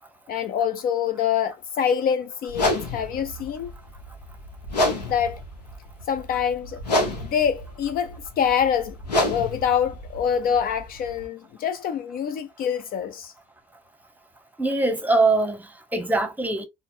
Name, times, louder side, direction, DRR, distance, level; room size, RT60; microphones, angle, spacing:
voice 1, 0.3-3.7 5.1-5.4 6.1-6.8 7.1-13.3, left 8 dB, 45° left, 0.4 m, -25 dB
sound 1, 2.5-11.2, left 1 dB, 85° left, 0.8 m, -29 dB
voice 2, 14.6-16.6, right 2 dB, 10° right, 0.9 m, -22 dB
4.1 x 2.0 x 2.4 m
figure-of-eight pair, 50°, 21 cm